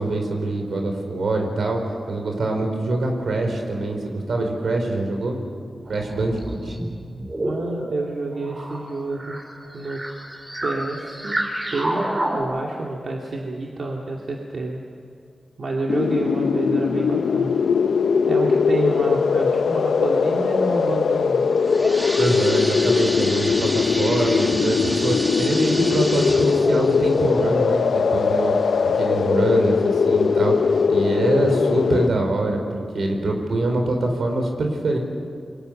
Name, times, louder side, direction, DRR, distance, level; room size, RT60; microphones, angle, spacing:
voice 1, 0.0-1.8 2.1-5.4 5.9-6.7 7.2-7.3 22.2-35.0, right 2 dB, 85° right, 3 dB, 4.6 m, -24 dB
sound 1, 5.8-12.4, right 1 dB, 30° right, 5.2 m, -30 dB
voice 2, 7.4-9.4 9.7-10.0 10.6-11.4 11.7-14.8 15.6-17.5 18.3-21.5 31.3-31.6, right 2 dB, 70° right, -1 dB, 2.5 m, -28 dB
sound 2, 15.9-32.1, left 5 dB, 90° left, 0.7 m, -20 dB
sound 3, 21.4-29.0 29.5-29.6 30.3-30.4 30.8-30.9, equal, 5° right, 2.0 m, -31 dB
28.5 x 23.5 x 6.7 m, 2.2 s
wide cardioid pair, 90°, 0 cm